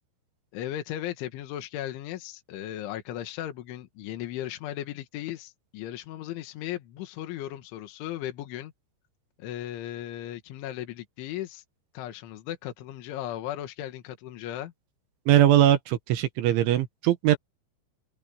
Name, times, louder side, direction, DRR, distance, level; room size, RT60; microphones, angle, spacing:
voice 1, 0.5-8.7 9.4-11.6 11.9-14.7, left 12 dB, 75° left, 4.0 m, -36 dB
voice 2, 15.3-17.4, right 12 dB, 75° right, 3.6 m, -21 dB
omnidirectional pair, 5.8 m